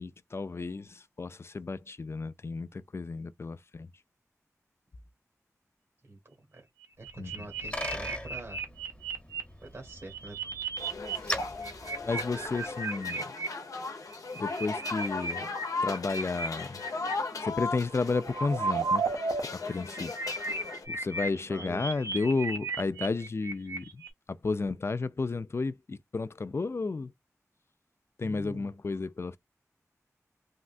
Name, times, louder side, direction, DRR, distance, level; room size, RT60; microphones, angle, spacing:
voice 1, 0.0-3.9 7.2-7.5 12.1-13.3 14.4-15.5 15.8-16.8 17.4-19.0 19.5-20.1 20.9-24.0 24.3-27.1 28.2-29.4, left 3 dB, 50° left, 0.4 m, -32 dB
voice 2, 6.0-6.7 7.0-8.6 9.6-10.5 20.9-21.1 21.5-21.9 28.2-28.7, right 2 dB, 65° right, 1.3 m, -45 dB
sound 1, 6.8-9.4 9.9-11.2 11.4-13.5 14.1-17.1 17.9-19.4 19.7-24.1, right 3 dB, 80° right, 0.8 m, -34 dB
Bicycle, 7.1-12.8, equal, 20° left, 0.9 m, -41 dB
sound 2, 10.8-20.8, left 3 dB, 85° left, 0.8 m, -37 dB
3.6 x 2.2 x 2.4 m
wide cardioid pair, 55°, 6 cm